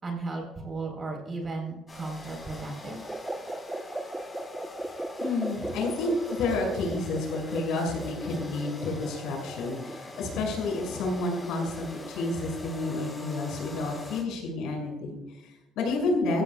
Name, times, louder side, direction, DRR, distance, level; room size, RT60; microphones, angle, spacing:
voice 1, 0.0-3.0, right 3 dB, 30° right, 1 dB, 4.1 m, -35 dB
sound 1, 1.9-14.2, left 3 dB, 20° left, 4.7 m, -43 dB
sound 2, 3.1-12.7, right 2 dB, 10° right, 1.0 m, -38 dB
voice 2, 5.2-16.4, left 2 dB, 80° left, 0 dB, 6.5 m, -30 dB
24.5 x 15.5 x 2.4 m, 1.0 s
cardioid pair, 135°, 0 cm